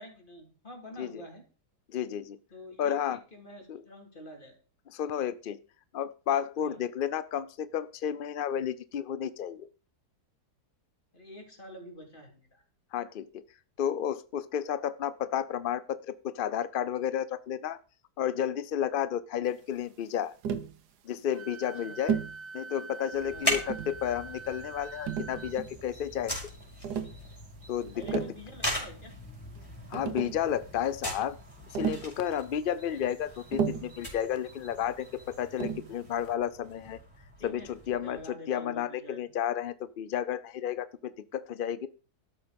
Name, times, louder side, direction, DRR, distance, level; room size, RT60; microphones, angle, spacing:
voice 1, 0.0-1.4 2.5-4.6 6.6-6.8 11.1-12.6 21.8-22.0 23.3-23.6 27.6-29.1 32.9-33.1 37.4-39.2, left 1 dB, 30° left, 2 dB, 3.5 m, -47 dB
voice 2, 1.9-2.4 2.8-3.2 3.7-3.8 4.9-5.6 5.9-9.7 12.9-13.4 13.8-17.8 18.2-20.3 21.0-22.2 22.5-26.4 27.7-28.2 29.9-31.4 31.7-37.0 37.4-41.9, left 9 dB, 75° left, 15 dB, 0.4 m, -32 dB
Tap, 20.4-20.8 22.1-22.4 23.4-24.0 25.1-25.8 26.8-27.2 27.9-28.4 29.6-29.7 29.9-30.4 31.7-32.1 33.5-34.0 35.6-35.9, right 8 dB, 80° right, 1.5 m, -33 dB
Wind instrument woodwind instrument, 21.3-25.5, right 3 dB, 45° right, 0.8 m, -45 dB
sound 1, 23.1-38.3, left 1 dB, 15° left, 5.2 m, -40 dB
12.5 x 8.7 x 5.2 m, 0.39 s
omnidirectional pair, 1.7 m